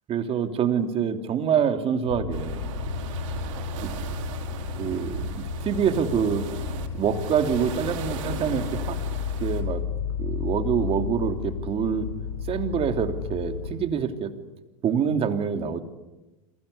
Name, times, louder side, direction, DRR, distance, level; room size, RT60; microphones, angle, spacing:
voice 1, 0.1-2.7 3.8-3.9 4.8-6.4 6.9-9.0 9.4-9.8 10.2-12.1 12.5-14.3 14.8-15.8, right 7 dB, 35° right, 6 dB, 3.1 m, -26 dB
sound 1, 2.1-13.8, left 7 dB, 85° left, 1.9 m, -32 dB
sound 2, 2.3-9.6, right 8 dB, 65° right, 6.5 m, -37 dB
29.5 x 22.5 x 8.4 m, 1.1 s
hypercardioid pair, 105°, 18 cm